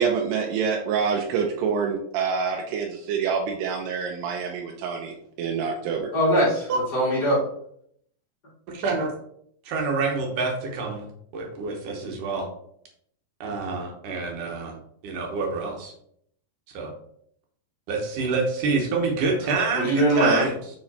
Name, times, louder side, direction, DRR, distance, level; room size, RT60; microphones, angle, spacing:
voice 1, 0.0-6.1, right 6 dB, 85° right, 0 dB, 2.6 m, -26 dB
voice 2, 6.1-7.4 19.7-20.5, right 1 dB, 45° left, -7 dB, 1.2 m, -21 dB
voice 3, 8.7-9.1 9.7-11.1 11.3-12.5 13.4-14.8 15.0-15.9 16.7-16.9 17.9-20.5, right 4 dB, 65° right, 1 dB, 2.2 m, -27 dB
6.9 x 3.7 x 4.2 m, 0.68 s
omnidirectional pair, 4.9 m